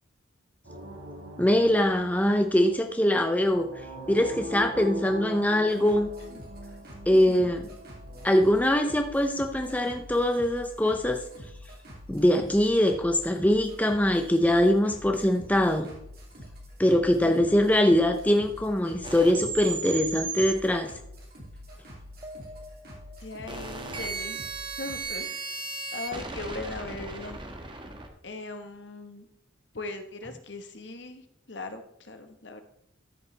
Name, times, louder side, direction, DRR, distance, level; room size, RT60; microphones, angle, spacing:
sound 1, 0.6-8.3, right 1 dB, 80° right, 3.6 m, -41 dB
voice 1, 1.4-3.7 4.1-6.1 7.1-7.7 8.2-11.2 12.1-15.9 16.8-20.9, left 1 dB, 10° left, 5 dB, 0.6 m, -23 dB
sound 2, 5.7-25.0, equal, 50° right, 2.9 m, -46 dB
voice 2, 7.1-7.6 23.2-24.4 24.8-25.6 25.9-27.4 28.2-29.3 29.7-31.2 31.5-32.6, left 2 dB, 60° left, 7 dB, 1.2 m, -39 dB
sound 3, 19.0-20.5 22.2-28.1, right 4 dB, 25° right, 1.2 m, -36 dB
13.0 x 7.0 x 3.3 m, 0.75 s
head